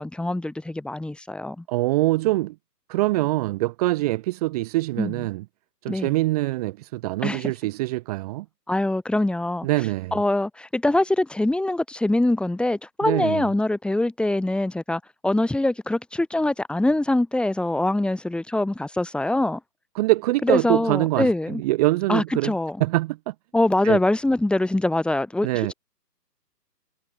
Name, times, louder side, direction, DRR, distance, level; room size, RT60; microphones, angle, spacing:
voice 1, 0.0-1.6 5.0-5.3 5.9-6.1 7.2-7.5 8.7-9.7 10.1-19.6 20.4-21.6 22.1-22.8 23.5-25.7, left 1 dB, ahead, 7.2 m, -23 dB
voice 2, 1.7-2.6 2.9-5.4 5.8-8.5 9.6-10.2 13.0-13.4 20.0-22.5 22.8-23.3 23.8-24.0 25.4-25.7, right 19 dB, 25° right, 1.8 m, -24 dB
hypercardioid pair, 150°, 49 cm